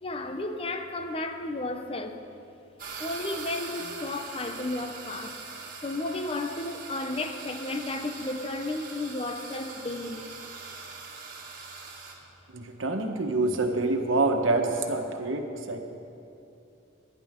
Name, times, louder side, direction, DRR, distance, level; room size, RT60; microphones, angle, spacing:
voice 1, 0.0-2.2 3.0-5.4 5.8-10.2, left 2 dB, 30° left, 0.7 m, -33 dB
sound 1, 2.8-12.2, right 4 dB, 45° right, 2.0 m, -42 dB
voice 2, 12.5-15.8, right 2 dB, 85° right, 1.3 m, -26 dB
23.0 x 10.5 x 3.7 m
head